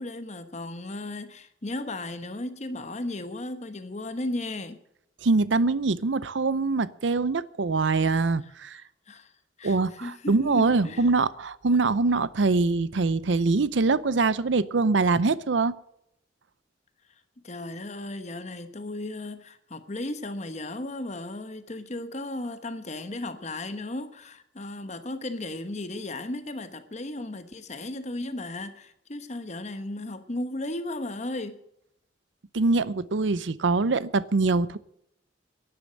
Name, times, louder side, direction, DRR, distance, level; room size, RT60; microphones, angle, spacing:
voice 1, 0.0-4.8 8.7-9.3 9.6-11.0 17.1-31.6, left 2 dB, 40° left, 1.1 m, -35 dB
voice 2, 5.2-8.8 9.6-15.7 32.5-34.8, right 3 dB, 80° right, 0.6 m, -24 dB
11.5 x 10.5 x 7.8 m
head